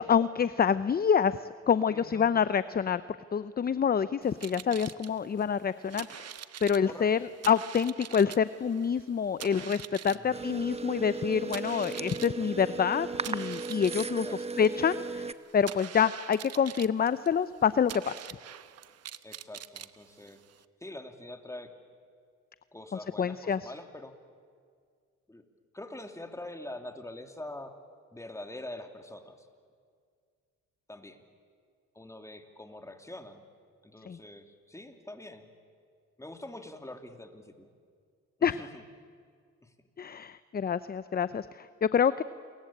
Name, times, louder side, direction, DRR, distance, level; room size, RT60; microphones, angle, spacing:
voice 1, 0.0-1.4 1.7-3.0 3.3-6.3 6.6-7.2 7.5-14.3 14.6-15.3 15.5-18.2 23.2-23.7 34.1-34.2 38.4-38.6 40.0-42.2, left 7 dB, 30° left, 15 dB, 0.7 m, -27 dB
voice 2, 1.9-2.3 6.9-7.2 10.1-10.5 14.2-14.4 19.2-20.4 20.8-21.7 22.7-24.1 25.3-25.4 25.7-27.7 28.1-29.5 30.9-31.2 31.9-33.4 33.8-35.5 36.2-37.7 38.4-38.8 39.6-39.7, left 1 dB, 10° left, 6 dB, 2.7 m, -44 dB
sound 1, 4.2-20.6, right 10 dB, 55° right, 1.0 m, -45 dB
sound 2, 10.3-15.3, right 3 dB, 20° right, 1.0 m, -36 dB
29.0 x 22.5 x 8.7 m, 2.1 s
cardioid pair, 90°, 30 cm